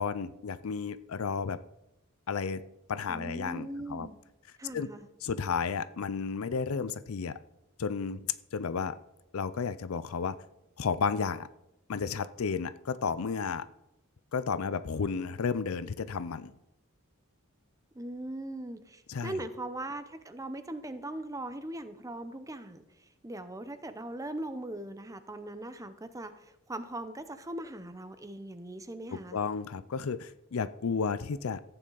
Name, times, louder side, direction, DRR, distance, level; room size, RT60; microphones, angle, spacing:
voice 1, 0.0-1.6 2.3-2.6 2.9-4.1 4.7-4.9 5.2-7.4 7.8-8.3 8.5-9.0 9.3-10.4 10.8-11.5 11.9-13.7 14.3-16.5 19.1-19.4 29.1-31.6, left 5 dB, 75° left, 15 dB, 0.5 m, -32 dB
voice 2, 3.1-4.2 4.6-5.1 17.9-29.4, right 1 dB, 15° right, 10 dB, 0.7 m, -40 dB
14.5 x 9.0 x 3.9 m, 0.88 s
head